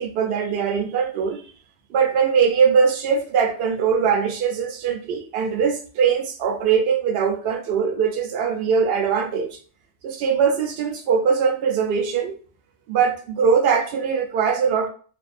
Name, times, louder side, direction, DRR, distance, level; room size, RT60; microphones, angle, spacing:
voice 1, 0.0-1.4 1.9-9.5 10.0-12.3 12.9-14.9, right 6 dB, 65° right, 0.7 m, -21 dB
2.5 x 2.2 x 2.4 m
omnidirectional pair, 1.2 m